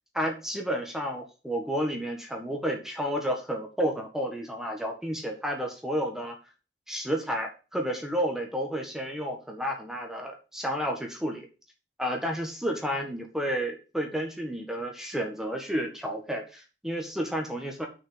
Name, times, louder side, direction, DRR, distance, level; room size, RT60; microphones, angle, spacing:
voice 1, 0.1-6.3 6.9-11.5 12.0-17.9, equal, 5° right, 2 dB, 1.5 m, -31 dB
6.3 x 5.5 x 7.1 m, 0.32 s
head